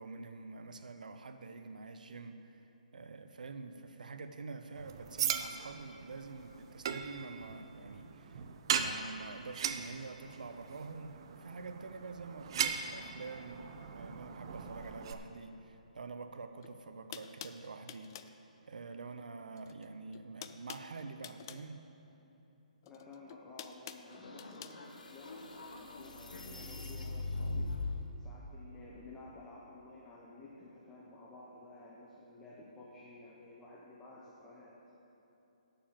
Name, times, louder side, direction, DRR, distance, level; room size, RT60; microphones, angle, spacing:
voice 1, 0.0-8.4 8.7-18.1 18.7-21.8, right 4 dB, 85° right, 7 dB, 0.7 m, -47 dB
sound 1, 4.7-15.1, right 7 dB, 40° right, 0.5 m, -39 dB
sound 2, 16.6-16.7 17.1-18.4 19.5-19.9 20.1-21.7 22.8-24.8, left 9 dB, 30° left, 0.3 m, -48 dB
voice 2, 22.8-27.9 28.2-34.7, left 2 dB, 10° left, -5 dB, 0.8 m, -53 dB
sound 3, 24.1-28.1, left 2 dB, 80° left, 1.3 m, -41 dB
8.9 x 6.9 x 7.4 m, 3.0 s
hypercardioid pair, 165°, 4 cm